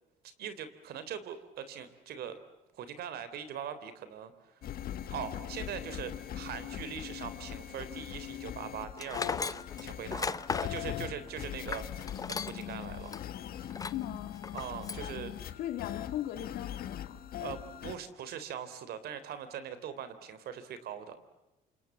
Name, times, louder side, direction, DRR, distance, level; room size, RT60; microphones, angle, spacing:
voice 1, 0.4-2.4 2.7-4.5 5.1-13.1 14.5-15.6 17.4-21.2, right 8 dB, 70° right, 12 dB, 3.6 m, -42 dB
sound 1, 4.6-18.0, left 11 dB, 60° left, 1.8 m, -41 dB
Tools, 9.0-12.7 13.1-13.2 13.7-14.1 14.4-15.1, left 4 dB, 20° left, 0.9 m, -36 dB
voice 2, 13.8-14.4 15.5-17.2, left 12 dB, 80° left, 7 dB, 3.3 m, -38 dB
28.0 x 27.0 x 7.4 m, 1.0 s
cardioid pair, 110°, 17 cm